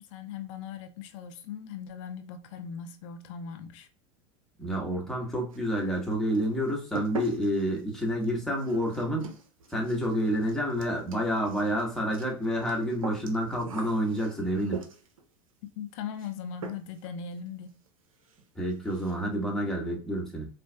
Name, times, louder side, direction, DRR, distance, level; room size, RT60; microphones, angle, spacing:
voice 1, 0.0-3.9 15.8-17.8, left 7 dB, 65° left, 0.6 m, -39 dB
voice 2, 4.6-9.3 9.7-14.8 18.5-20.5, equal, 5° left, 1.4 m, -29 dB
sound 1, 5.5-6.1 6.3-15.2 16.2-16.4 16.6-17.1 17.4-17.5 17.9-18.0 18.2-18.4 18.7-19.2, right 5 dB, 90° right, 0.7 m, -43 dB
4.5 x 2.5 x 2.3 m
hypercardioid pair, 90°, 17 cm